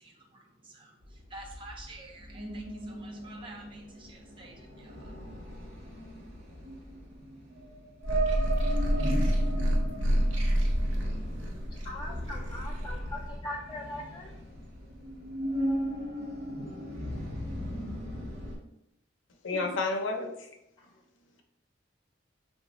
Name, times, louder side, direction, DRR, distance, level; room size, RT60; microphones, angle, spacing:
voice 1, 0.0-5.8, right 2 dB, 25° right, 0 dB, 0.5 m, -50 dB
sound 1, 1.0-18.6, right 1 dB, 50° right, 0.9 m, -37 dB
sound 2, 8.0-13.4, equal, 75° right, 0.6 m, -28 dB
voice 2, 11.8-14.3, left 1 dB, 25° left, -3 dB, 0.3 m, -40 dB
voice 3, 19.4-20.5, left 3 dB, 80° left, 3 dB, 0.5 m, -30 dB
3.9 x 2.2 x 2.9 m, 0.81 s
head